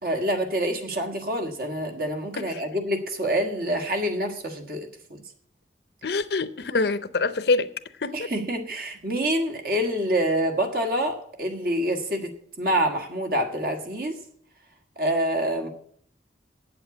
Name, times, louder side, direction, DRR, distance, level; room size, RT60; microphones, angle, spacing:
voice 1, 0.0-5.2 8.1-12.3 12.6-14.2 15.0-15.7, right 1 dB, 55° right, 1.5 m, -26 dB
voice 2, 6.0-7.7 8.0-8.3, left 3 dB, 65° left, 0.6 m, -25 dB
8.4 x 7.8 x 8.2 m
head